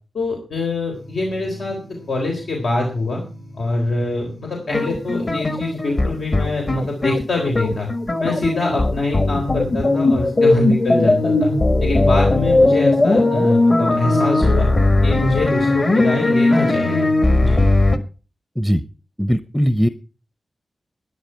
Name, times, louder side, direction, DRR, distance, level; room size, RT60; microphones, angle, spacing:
voice 1, 0.1-1.8 2.1-3.2 3.6-7.9 8.2-11.5 11.8-14.7 15.0-17.1 17.4-17.6, left 2 dB, 80° left, 1 dB, 3.9 m, -24 dB
sound 1, 0.9-17.0, equal, 60° left, 3.7 m, -41 dB
sound 2, 4.7-18.0, left 2 dB, 35° left, 1.6 m, -18 dB
voice 2, 19.2-19.9, equal, 5° left, 13 dB, 0.7 m, -19 dB
14.0 x 10.0 x 5.7 m, 0.36 s
wide cardioid pair, 135°, 0 cm